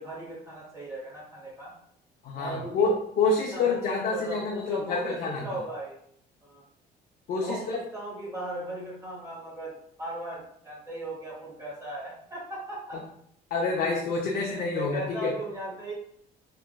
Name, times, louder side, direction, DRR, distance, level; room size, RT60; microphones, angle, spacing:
voice 1, 0.0-1.7 2.3-2.9 3.5-6.0 6.4-6.6 7.4-9.7 10.0-13.0 14.3-15.9, right 1 dB, 20° right, -6 dB, 0.8 m, -37 dB
voice 2, 2.2-5.4 7.3-7.8 12.9-13.0 13.5-15.3, left 3 dB, 60° left, -1 dB, 0.5 m, -27 dB
2.9 x 2.5 x 2.2 m, 0.69 s
cardioid pair, 110°, 17 cm